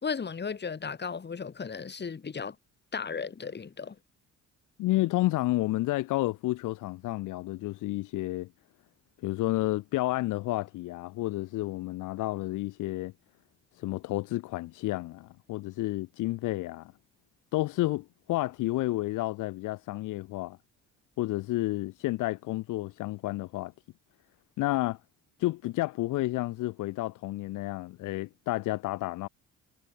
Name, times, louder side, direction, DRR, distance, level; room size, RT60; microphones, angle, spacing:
voice 1, 0.0-2.6 2.9-4.0, left 5 dB, 35° left, 2.6 m, -35 dB
voice 2, 4.8-8.5 9.2-13.1 13.8-16.9 17.5-20.6 21.2-23.7 24.6-25.0 25.4-29.3, left 18 dB, 85° left, 0.8 m, -30 dB
cardioid pair, 90°, 30 cm